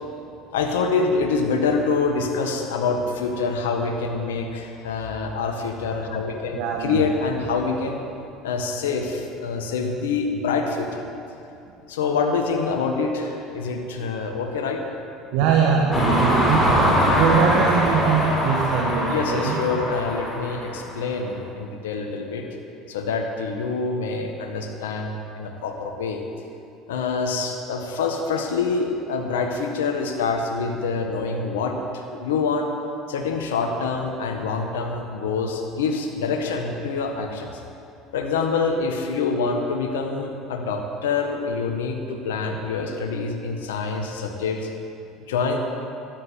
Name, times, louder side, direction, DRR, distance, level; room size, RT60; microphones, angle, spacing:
voice 1, 0.5-8.0 8.4-11.0 11.9-14.8 19.0-22.4 22.9-26.2 26.9-32.7 33.1-37.5 38.1-44.7 45.3-45.6, left 4 dB, 80° left, 3 dB, 1.5 m, -26 dB
voice 2, 6.5-7.0 15.3-19.6, right 6 dB, 65° right, 0 dB, 1.5 m, -22 dB
sound 1, 15.9-21.0, equal, 20° left, 4.3 m, -22 dB
13.0 x 11.0 x 7.6 m, 2.8 s
hypercardioid pair, 70°, 0 cm